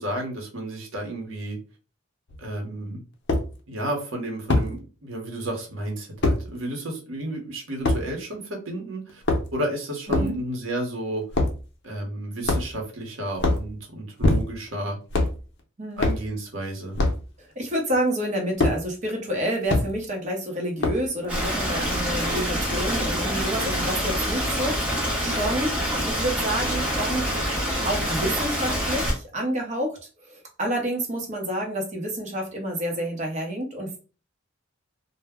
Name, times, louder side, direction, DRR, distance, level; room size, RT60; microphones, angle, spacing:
voice 1, 0.0-1.6 2.4-3.0 3.7-9.2 9.5-11.3 11.8-15.0 16.0-17.0 23.6-23.9, right 1 dB, 70° right, 1 dB, 0.9 m, -32 dB
sound 1, 2.3-2.4 3.3-3.5 4.5-4.7 6.2-6.4 7.8-8.0 9.1-9.6 10.1-10.3 11.3-11.6 12.4-12.9 13.3-13.7 14.2-14.7 15.1-15.4 16.0-16.2 16.9-17.2 18.6-18.8 19.7-19.9 20.8-21.1, left 2 dB, 55° left, 0.6 m, -22 dB
voice 2, 15.8-16.1 17.4-25.8 26.1-27.3 27.8-34.0, right 1 dB, 35° right, 1 dB, 0.7 m, -29 dB
Stream, 21.3-29.1, equal, 5° right, 0.7 m, -26 dB
2.1 x 2.1 x 3.4 m, 0.35 s
head